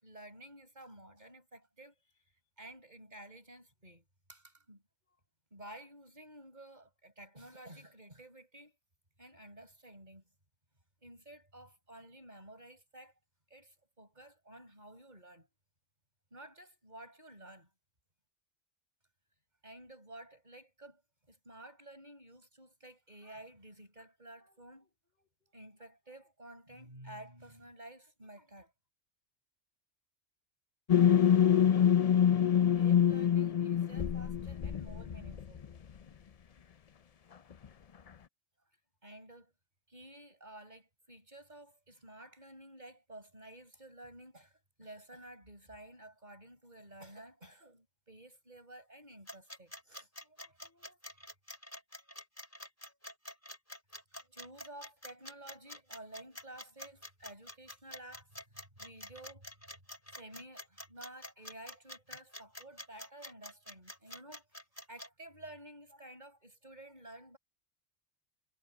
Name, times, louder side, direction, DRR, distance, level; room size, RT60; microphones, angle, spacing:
voice 1, 0.0-1.9 2.6-4.8 5.5-8.7 9.2-10.3 11.0-13.1 13.5-15.5 16.3-17.7 19.6-21.0 21.3-28.7 31.1-35.6 39.0-39.5 39.9-51.2 54.2-59.5 60.1-64.5 64.9-67.4, right 1 dB, 40° right, 7.6 m, -53 dB
sound 1, 30.9-35.7, left 9 dB, 45° left, 0.5 m, -26 dB
sound 2, 49.3-65.1, left 1 dB, 10° left, 4.3 m, -47 dB
omnidirectional pair, 1.2 m